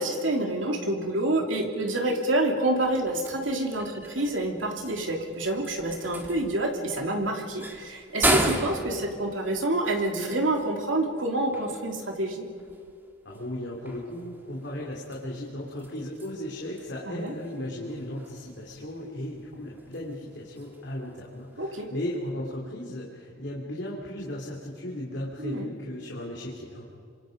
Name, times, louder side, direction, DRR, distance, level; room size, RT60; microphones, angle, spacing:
voice 1, 0.0-12.5 17.0-17.3 21.6-21.9 25.4-25.7, right 1 dB, 80° right, 2 dB, 3.0 m, -28 dB
sound 1, 2.7-22.3, right 1 dB, 10° right, 1.9 m, -36 dB
voice 2, 13.2-26.9, left 1 dB, 60° left, -3 dB, 3.1 m, -36 dB
27.5 x 26.0 x 5.2 m, 2.3 s
head